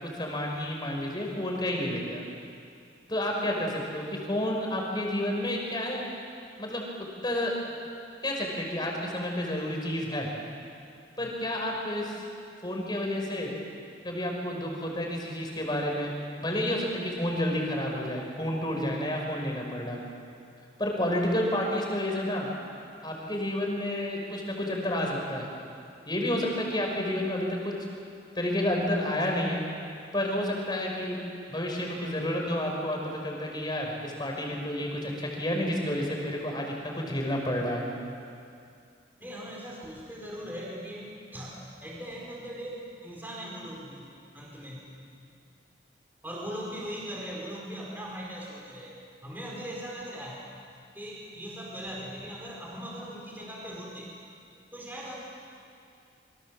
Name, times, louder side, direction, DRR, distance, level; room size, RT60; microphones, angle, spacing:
voice 1, 0.0-2.2 3.1-6.0 6.6-6.9 7.2-7.5 8.2-10.3 11.2-12.2 12.6-13.5 14.0-16.1 16.4-20.0 20.8-22.5 23.0-25.5 26.1-27.7 28.4-29.6 30.1-31.2 31.5-37.8, left 1 dB, 25° left, 0 dB, 5.2 m, -30 dB
voice 2, 39.2-44.1 44.3-44.8 46.2-50.5 50.9-54.1 54.7-55.2, equal, 10° right, -3 dB, 4.7 m, -40 dB
27.5 x 24.0 x 7.6 m, 2.4 s
head